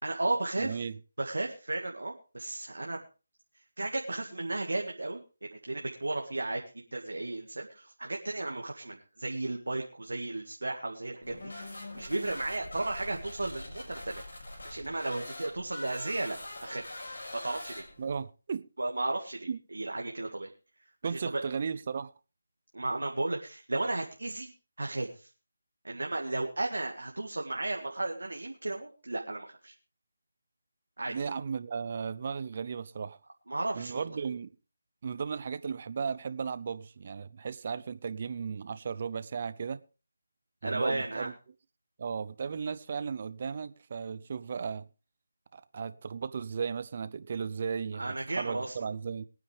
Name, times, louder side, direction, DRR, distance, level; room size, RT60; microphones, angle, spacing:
voice 1, 0.0-0.8 1.2-3.0 3.8-14.2 14.6-16.4 16.6-16.8 17.3-17.8 18.8-20.5 21.0-21.4 22.7-24.5 24.8-25.3 25.8-29.7 31.0-31.1 33.5-34.2 40.6-41.3 47.9-48.8, right 2 dB, 80° right, 1.9 m, -34 dB
voice 2, 0.6-1.0 18.0-18.7 19.5-19.6 21.0-22.1 31.1-33.2 33.7-34.5 35.0-39.8 40.6-41.3 42.0-44.9 45.5-49.3, right 6 dB, 40° right, 0.7 m, -35 dB
sound 1, 11.2-18.2, left 1 dB, 70° left, 6.3 m, -43 dB
23.0 x 9.3 x 3.4 m
figure-of-eight pair, 160°, 0 cm